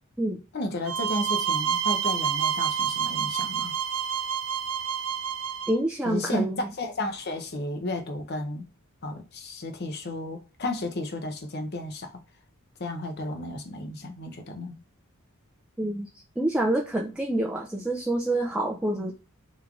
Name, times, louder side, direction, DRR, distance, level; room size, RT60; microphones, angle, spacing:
voice 1, 0.5-3.7 6.0-6.5 6.8-8.6 9.0-12.2 12.8-14.8, left 1 dB, 45° left, 0.7 m, -33 dB
sound 1, 0.9-5.8, right 8 dB, 85° right, 0.5 m, -28 dB
voice 2, 5.7-6.7 15.8-16.1 16.4-19.1, right 1 dB, 5° right, 0.3 m, -27 dB
3.6 x 3.1 x 2.4 m
head